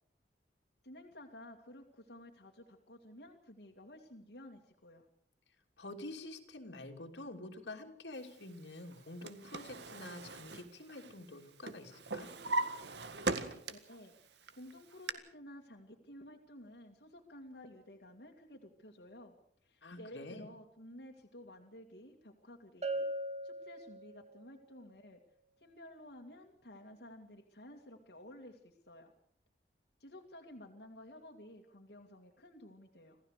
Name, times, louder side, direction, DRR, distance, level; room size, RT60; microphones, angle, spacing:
voice 1, 0.8-5.1 13.7-19.3 19.6-23.1 23.4-25.2 25.6-29.1 30.0-33.2, left 1 dB, 70° left, 2 dB, 2.3 m, -53 dB
voice 2, 5.8-12.3 19.8-20.5, left 2 dB, 85° left, 4 dB, 3.0 m, -47 dB
Drawer open or close, 8.9-11.4 11.7-14.0 14.4-15.1, right 3 dB, 75° right, 1.8 m, -39 dB
Bell, 22.8-24.4, right 1 dB, 40° right, 2.8 m, -39 dB
27.0 x 16.0 x 6.6 m, 0.64 s
head